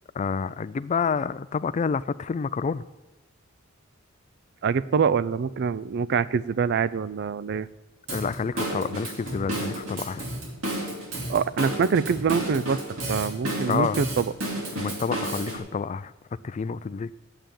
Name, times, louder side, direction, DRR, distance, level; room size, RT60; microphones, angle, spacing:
voice 1, 0.1-2.8 8.1-10.3 13.7-14.0 14.8-16.1 16.4-17.1, left 5 dB, 35° left, 15 dB, 0.3 m, -28 dB
voice 2, 4.6-7.7 11.3-12.8 13.1-14.3, right 6 dB, 55° right, 17 dB, 0.4 m, -25 dB
Drum kit / Drum, 8.1-15.6, right 1 dB, 80° right, 2.7 m, -32 dB
9.1 x 7.7 x 8.7 m, 1.1 s
head